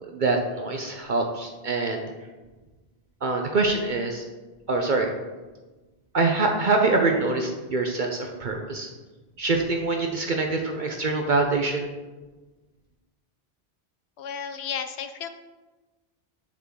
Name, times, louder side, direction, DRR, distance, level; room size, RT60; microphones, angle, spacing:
voice 1, 0.0-2.1 3.2-4.2 4.7-5.1 6.1-8.9 9.4-11.9, right 3 dB, 55° right, 3 dB, 0.8 m, -25 dB
voice 2, 14.2-15.3, left 7 dB, 90° left, 9 dB, 0.9 m, -33 dB
7.4 x 6.1 x 3.7 m, 1.2 s
omnidirectional pair, 1.1 m